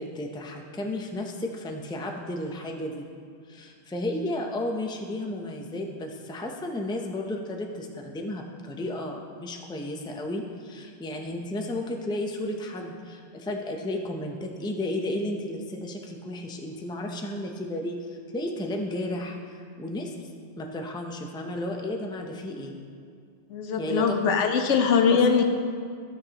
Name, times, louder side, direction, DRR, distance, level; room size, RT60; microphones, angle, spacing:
voice 1, 0.0-3.1 3.5-20.1 20.6-22.7 23.8-24.1 24.7-24.8 25.1-25.2, left 1 dB, 5° left, 2 dB, 0.4 m, -33 dB
voice 2, 23.5-25.4, left 6 dB, 90° left, 6 dB, 1.1 m, -22 dB
13.5 x 6.6 x 2.9 m, 2.1 s
omnidirectional pair, 1.2 m